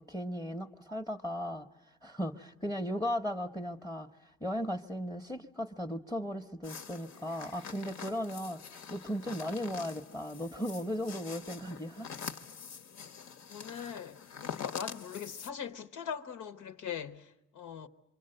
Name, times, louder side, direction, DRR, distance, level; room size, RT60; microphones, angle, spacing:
voice 1, 0.0-1.7 2.0-12.1, equal, 10° left, 0.9 m, -36 dB
sound 1, 6.6-15.5, left 7 dB, 65° left, 1.1 m, -45 dB
voice 2, 13.5-17.9, left 8 dB, 80° left, 1.2 m, -41 dB
27.0 x 24.0 x 7.8 m
cardioid pair, 90°, 30 cm